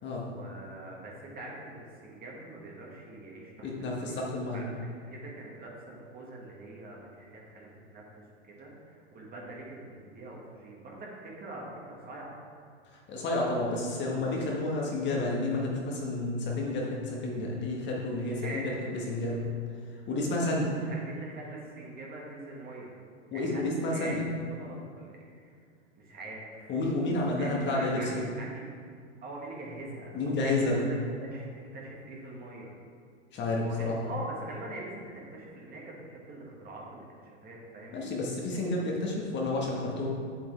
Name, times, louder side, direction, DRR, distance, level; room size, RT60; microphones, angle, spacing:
voice 1, 0.1-4.2 4.5-12.4 18.1-18.9 20.6-22.9 23.3-24.2 24.4-25.5 26.0-26.7 27.3-28.6 29.2-30.9 31.2-31.5 31.7-32.7 33.6-38.1, right 2 dB, 25° right, -2 dB, 1.8 m, -44 dB
voice 2, 3.6-4.6 12.9-19.4 20.1-20.7 23.3-24.2 26.7-28.0 30.1-30.8 33.3-34.1 37.9-40.1, left 2 dB, 30° left, -2 dB, 1.5 m, -30 dB
7.8 x 7.5 x 3.4 m, 2.2 s
hypercardioid pair, 120°, 35 cm